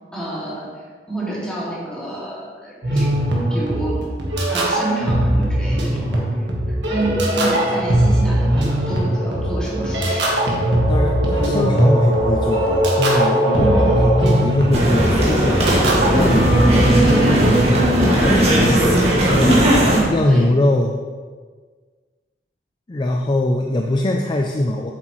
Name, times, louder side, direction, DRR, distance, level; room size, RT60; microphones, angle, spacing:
voice 1, 0.1-3.1 3.5-4.1 4.5-10.3 13.6-14.0 16.6-17.6 19.8-20.5, right 2 dB, 5° left, -7 dB, 2.2 m, -28 dB
sound 1, 2.8-18.1, right 1 dB, 85° right, 1.6 m, -19 dB
voice 2, 5.8-6.3 10.9-16.5 17.2-17.3 17.6-18.8 19.3-20.9 22.9-24.9, left 1 dB, 25° left, 2 dB, 0.4 m, -22 dB
sound 2, 14.7-20.0, right 1 dB, 35° right, 1.9 m, -17 dB
7.8 x 7.6 x 3.1 m, 1.5 s
head